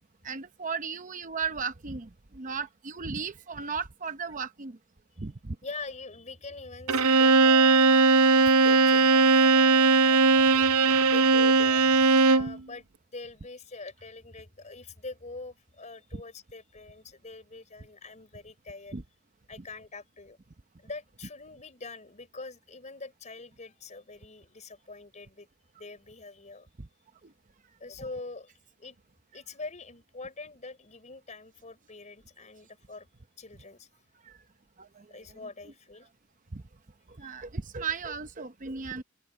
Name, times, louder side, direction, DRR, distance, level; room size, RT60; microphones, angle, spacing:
voice 1, 0.2-4.8 5.2-5.6 18.9-19.0 34.2-34.4 34.8-35.1 36.5-36.6 37.2-39.0, right 5 dB, 35° right, 0.7 m, -35 dB
voice 2, 5.6-18.9 19.5-20.4 20.8-25.5 25.8-26.7 27.8-28.5 28.8-29.0 29.3-33.1 33.4-33.9 35.1-36.1 37.2-37.3, left 3 dB, 35° left, 4.7 m, -44 dB
Bowed string instrument, 6.9-12.6, right 4 dB, 80° right, 0.7 m, -19 dB
open air
head